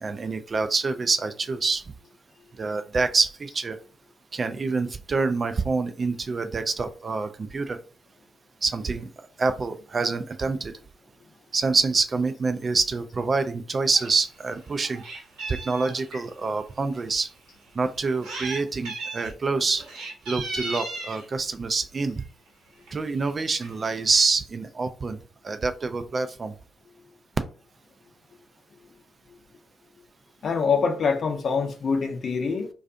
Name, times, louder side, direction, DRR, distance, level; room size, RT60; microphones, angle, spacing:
voice 1, 0.0-1.8 2.6-3.8 4.3-7.8 8.6-9.1 9.4-10.7 11.5-15.0 15.5-17.3 17.8-19.8 20.3-22.2 22.9-25.2 25.4-26.5, right 4 dB, 45° right, 0.3 m, -26 dB
Meow, 13.9-14.1 14.5-16.2 17.0-17.1 18.0-18.6 18.8-19.3 19.8-21.2 22.2-22.5 22.9-23.0 23.2-23.3 23.6-24.2, right 2 dB, 80° right, 0.9 m, -36 dB
voice 2, 30.4-32.7, left 5 dB, 55° left, 0.6 m, -25 dB
2.5 x 2.3 x 2.5 m
hypercardioid pair, 40°, 0 cm